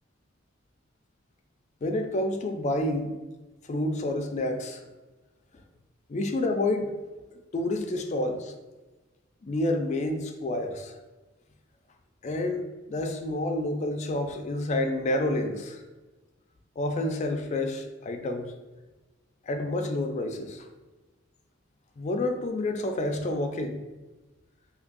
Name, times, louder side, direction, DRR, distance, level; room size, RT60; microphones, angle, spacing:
voice 1, 1.8-3.1 3.7-4.8 6.1-6.9 7.5-8.5 9.4-10.9 12.2-12.6 12.9-15.8 16.8-18.5 19.5-20.7 22.0-23.8, left 1 dB, 35° left, 5 dB, 0.3 m, -29 dB
2.7 x 2.5 x 3.8 m, 1.2 s
head